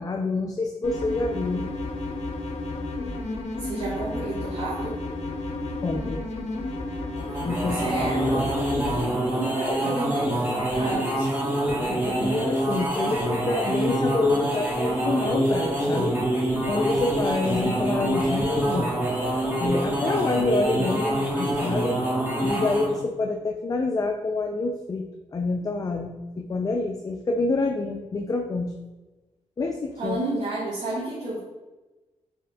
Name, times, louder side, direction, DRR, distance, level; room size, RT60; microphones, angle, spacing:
voice 1, 0.0-1.7 5.8-6.2 7.4-8.0 9.7-9.9 11.9-16.2 16.7-18.9 19.6-22.0 22.4-25.0 25.3-28.7 29.6-30.2, left 3 dB, 30° left, 3 dB, 0.3 m, -27 dB
sound 1, 0.8-9.0, left 2 dB, 65° left, 0.7 m, -32 dB
voice 2, 3.6-4.9 7.7-8.5 9.3-11.3 30.0-31.4, right 2 dB, 70° right, -7 dB, 1.3 m, -31 dB
sound 2, 7.2-23.0, right 1 dB, 15° right, 1.2 m, -26 dB
7.1 x 3.3 x 2.3 m, 1.1 s
cardioid pair, 100°, 12 cm